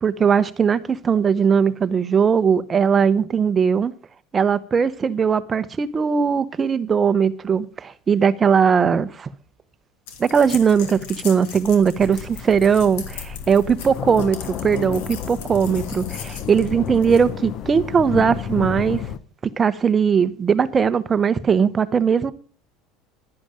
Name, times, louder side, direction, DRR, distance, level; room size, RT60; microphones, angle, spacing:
voice 1, 0.0-3.9 4.3-9.3 10.2-13.0 13.5-19.0 19.6-22.3, right 6 dB, 20° right, 0.8 m, -19 dB
sound 1, 10.1-17.3, left 6 dB, 85° left, 2.8 m, -39 dB
sound 2, 12.0-19.2, left 9 dB, 45° left, 1.0 m, -31 dB
11.5 x 11.0 x 5.0 m
cardioid pair, 145°, 0 cm